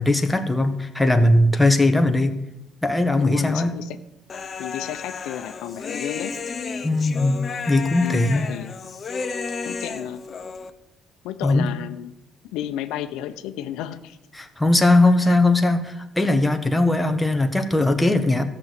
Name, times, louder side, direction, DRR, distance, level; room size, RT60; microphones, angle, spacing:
voice 1, 0.0-2.3 2.8-3.7 6.8-8.4 11.4-11.7 14.3-18.4, left 2 dB, 5° left, 6 dB, 1.1 m, -19 dB
voice 2, 3.2-4.0 4.6-6.3 8.0-8.7 9.6-10.2 11.2-12.1 12.5-14.2 15.2-15.4, left 11 dB, 85° left, 10 dB, 0.8 m, -32 dB
Human voice, 4.3-10.7, left 5 dB, 35° left, 0.8 m, -32 dB
13.5 x 6.2 x 8.3 m, 0.88 s
cardioid pair, 130°, 0 cm